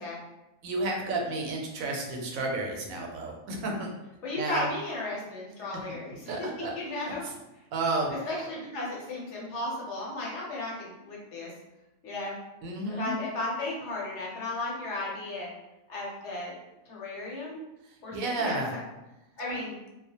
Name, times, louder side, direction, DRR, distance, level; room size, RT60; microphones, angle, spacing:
voice 1, 0.6-3.9 4.4-4.7 6.3-6.7 7.1-7.2 7.7-8.1 12.6-13.2 18.1-18.7 19.5-19.6, right 2 dB, 85° right, 1 dB, 1.0 m, -31 dB
voice 2, 4.2-7.2 8.1-11.5 12.0-12.4 12.9-15.5 15.9-16.5 16.9-17.6 18.0-18.8 19.4-19.7, left 2 dB, 65° left, -4 dB, 0.9 m, -35 dB
2.3 x 2.1 x 2.7 m, 0.97 s
omnidirectional pair, 1.4 m